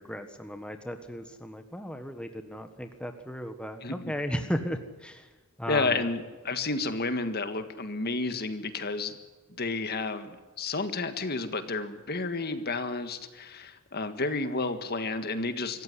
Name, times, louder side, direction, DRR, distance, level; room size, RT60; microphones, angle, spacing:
voice 1, 0.0-5.3 5.6-6.1, equal, 5° left, 6 dB, 1.4 m, -35 dB
voice 2, 3.8-4.1 5.7-9.1 9.6-15.8, left 3 dB, 45° left, 9 dB, 1.8 m, -31 dB
25.5 x 15.0 x 9.8 m, 1.3 s
head